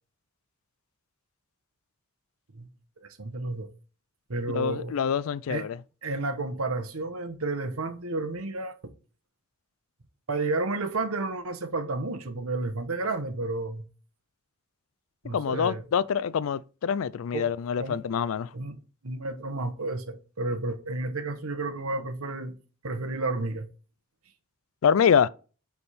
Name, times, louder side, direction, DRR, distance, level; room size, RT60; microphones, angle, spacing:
voice 1, 3.0-3.7 4.3-4.9 5.5-5.7 6.0-8.7 10.3-13.9 15.2-15.9 17.3-17.5 17.8-18.0 18.5-18.8 19.0-22.5 22.8-23.7, right 2 dB, 90° right, 1.0 m, -31 dB
voice 2, 4.5-5.8 15.3-18.5 24.8-25.3, left 7 dB, 75° left, 0.3 m, -25 dB
9.7 x 3.5 x 4.2 m
head